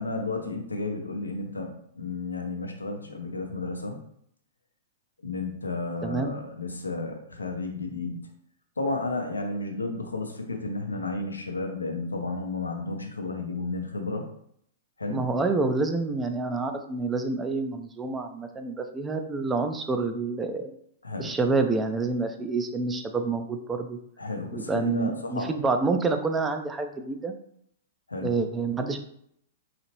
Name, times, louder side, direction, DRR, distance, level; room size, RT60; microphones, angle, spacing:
voice 1, 0.0-4.0 5.2-8.3 8.8-14.3 15.0-15.3 21.0-21.4 24.2-25.5 28.1-28.4, left 3 dB, 90° left, 3 dB, 0.6 m, -32 dB
voice 2, 6.0-6.3 15.1-20.7 21.2-24.0 24.5-27.3 28.2-29.0, right 3 dB, 15° right, 6 dB, 0.4 m, -28 dB
4.0 x 2.8 x 3.0 m, 0.69 s
figure-of-eight pair, 110°, 0 cm